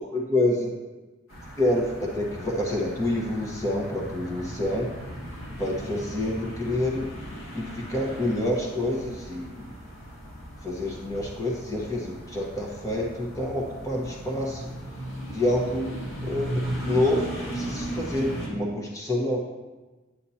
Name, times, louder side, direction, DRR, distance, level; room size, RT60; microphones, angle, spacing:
voice 1, 0.1-0.7 1.6-4.9 5.6-7.1 7.5-9.7 10.6-14.7 15.3-16.0 16.2-19.4, left 1 dB, 15° left, -2 dB, 1.2 m, -27 dB
sound 1, 1.3-18.5, right 1 dB, 70° left, 2.3 m, -37 dB
9.7 x 8.4 x 2.8 m, 1.2 s
head